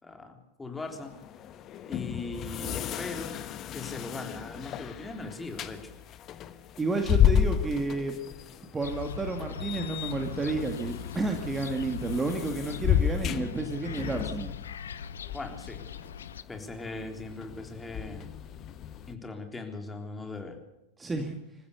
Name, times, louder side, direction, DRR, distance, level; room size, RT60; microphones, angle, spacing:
voice 1, 0.0-1.1 1.9-3.3 3.7-5.9 15.3-15.9 16.5-18.3 19.1-20.6, left 3 dB, 10° left, 4 dB, 3.7 m, -39 dB
sound 1, 0.8-19.1, left 10 dB, 30° left, 1.3 m, -33 dB
voice 2, 6.8-8.2 8.7-14.5 21.0-21.4, right 3 dB, 15° right, 5 dB, 2.1 m, -31 dB
sound 2, 8.8-16.4, left 7 dB, 65° left, 1.0 m, -40 dB
27.5 x 15.0 x 6.8 m, 0.91 s
figure-of-eight pair, 90°, 0 cm